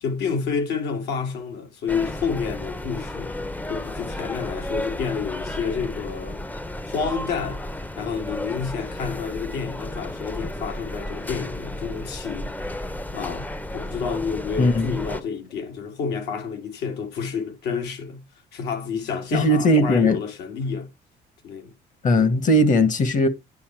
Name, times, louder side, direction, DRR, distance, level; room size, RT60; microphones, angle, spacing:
voice 1, 0.0-3.3 3.7-6.4 6.9-7.6 8.0-12.5 13.1-18.2 18.5-20.9 21.4-21.7, left 6 dB, 80° left, 2.1 m, -29 dB
sound 1, 1.9-15.2, left 1 dB, 10° left, 0.6 m, -33 dB
voice 2, 19.3-20.2 22.0-23.3, left 1 dB, 50° left, 1.4 m, -18 dB
9.8 x 4.4 x 4.4 m
cardioid pair, 110°, 17 cm